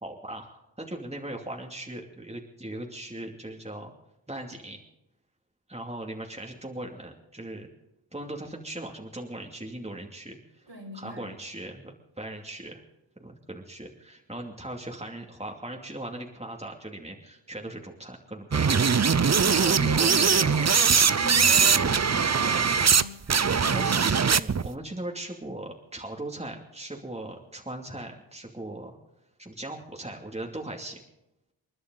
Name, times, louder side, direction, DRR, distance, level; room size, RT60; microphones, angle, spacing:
voice 1, 0.0-3.9 4.3-4.8 5.7-7.7 8.1-10.4 10.9-12.8 13.2-18.8 19.5-20.7 23.6-28.9 29.4-31.0, right 1 dB, 15° right, 1 dB, 2.6 m, -39 dB
voice 2, 10.7-11.3 19.2-20.8 21.2-23.9, equal, 70° right, -1 dB, 5.5 m, -39 dB
sound 1, 18.5-23.0 23.3-24.7, right 6 dB, 35° right, 0.6 m, -21 dB
29.0 x 11.0 x 4.0 m, 0.89 s
wide cardioid pair, 45°, 46 cm